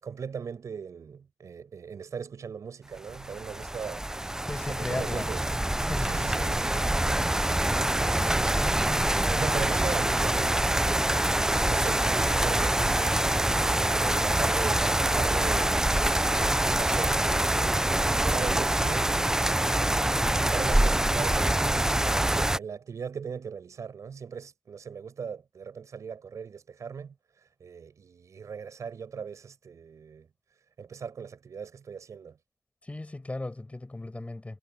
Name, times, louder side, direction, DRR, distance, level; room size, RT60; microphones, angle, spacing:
voice 1, 0.0-4.1 4.7-5.4 6.0-7.3 7.9-8.8 9.1-13.3 13.6-15.9 16.3-17.2 17.6-19.2 19.7-27.1 27.6-30.3 30.8-32.4, right 6 dB, 60° right, 6.0 m, -39 dB
sound 1, 3.1-22.6, right 1 dB, 10° right, 0.5 m, -25 dB
voice 2, 4.5-5.3 5.9-6.1 32.8-34.6, left 2 dB, 20° left, 5.1 m, -35 dB
cardioid pair, 60°, 6 cm